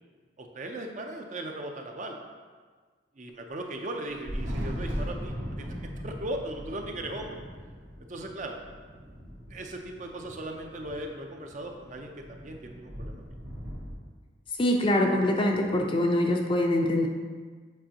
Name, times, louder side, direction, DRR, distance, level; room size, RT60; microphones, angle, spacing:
voice 1, 0.4-2.2 3.1-5.7 6.0-7.4 8.1-8.6 9.5-13.2, right 1 dB, 40° right, 3 dB, 0.5 m, -38 dB
Thunder, 4.1-13.9, equal, 75° right, 1.6 m, -39 dB
voice 2, 14.6-17.1, left 1 dB, 25° left, 2 dB, 0.5 m, -24 dB
7.6 x 5.0 x 2.9 m, 1.5 s
head